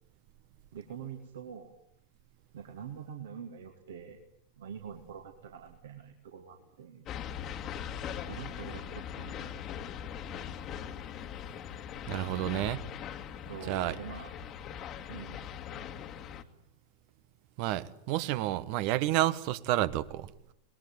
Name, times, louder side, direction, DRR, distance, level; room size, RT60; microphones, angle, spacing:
voice 1, 0.7-1.7 2.5-4.2 4.6-7.1 8.3-9.6 13.4-14.3 15.1-15.4, right 7 dB, 60° right, 2.9 m, -45 dB
sound 1, 7.1-16.4, left 9 dB, 35° left, 2.0 m, -41 dB
voice 2, 12.1-12.9 13.7-14.0 17.6-20.5, right 15 dB, 45° right, 1.3 m, -30 dB
27.5 x 21.5 x 9.6 m
figure-of-eight pair, 90°, 0 cm